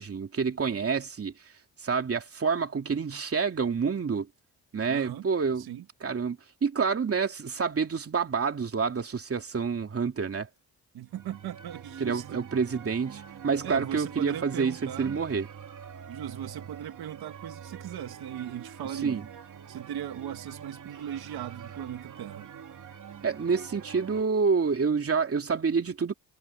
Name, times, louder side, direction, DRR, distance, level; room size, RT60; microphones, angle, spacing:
voice 1, 0.0-1.3 1.8-4.3 4.7-5.7 6.0-10.5 12.0-15.5 19.0-19.2 23.2-26.1, right 5 dB, 40° right, 2.8 m, -28 dB
voice 2, 4.9-5.3 5.6-5.8 10.9-12.4 13.6-15.2 16.1-19.2 19.7-22.5, right 10 dB, 80° right, 2.1 m, -38 dB
sound 1, 11.1-24.2, right 7 dB, 55° right, 2.9 m, -45 dB
cardioid pair, 85°, 37 cm